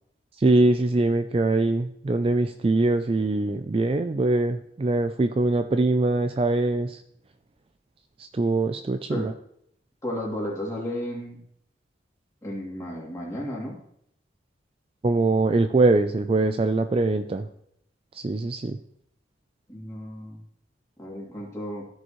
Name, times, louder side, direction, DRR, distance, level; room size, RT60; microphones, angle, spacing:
voice 1, 0.4-7.0 8.2-9.3 15.0-17.5 18.1-18.8, right 2 dB, 30° right, 8 dB, 0.3 m, -23 dB
voice 2, 10.0-11.4 12.4-13.8 19.7-20.4 21.0-21.9, left 1 dB, 15° left, -4 dB, 2.7 m, -33 dB
15.0 x 5.3 x 3.1 m, 0.72 s
head